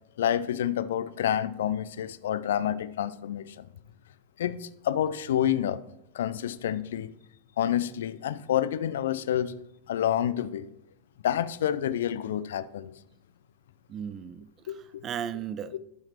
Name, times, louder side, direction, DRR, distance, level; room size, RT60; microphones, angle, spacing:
voice 1, 0.2-3.6 4.4-5.8 6.1-7.1 7.6-9.5 9.9-10.7 11.2-12.9 14.7-15.0 15.7-15.8, left 10 dB, 60° left, 0.4 m, -28 dB
voice 2, 13.9-15.8, right 9 dB, 30° right, 0.4 m, -36 dB
11.5 x 5.7 x 3.1 m
figure-of-eight pair, 90°, 0 cm